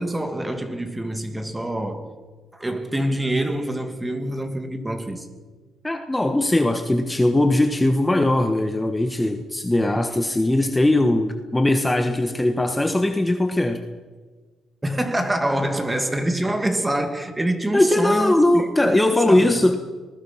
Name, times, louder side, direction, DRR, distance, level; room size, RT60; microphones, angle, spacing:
voice 1, 0.0-2.2 2.5-5.3 14.8-19.7, right 1 dB, 15° right, 2.5 m, -26 dB
voice 2, 5.8-13.8 17.7-19.8, left 1 dB, 10° left, 1.4 m, -20 dB
25.5 x 20.5 x 5.8 m
cardioid pair, 105°, 0 cm